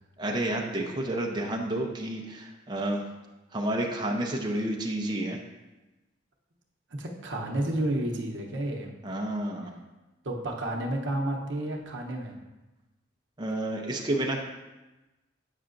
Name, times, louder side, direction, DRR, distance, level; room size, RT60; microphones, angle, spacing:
voice 1, 0.2-3.0 3.5-5.4 9.0-9.7 13.4-14.4, right 1 dB, 25° right, 0 dB, 0.6 m, -30 dB
voice 2, 6.9-8.9 10.2-12.3, right 1 dB, 70° right, 1 dB, 0.8 m, -31 dB
8.2 x 5.6 x 2.5 m, 1.1 s
head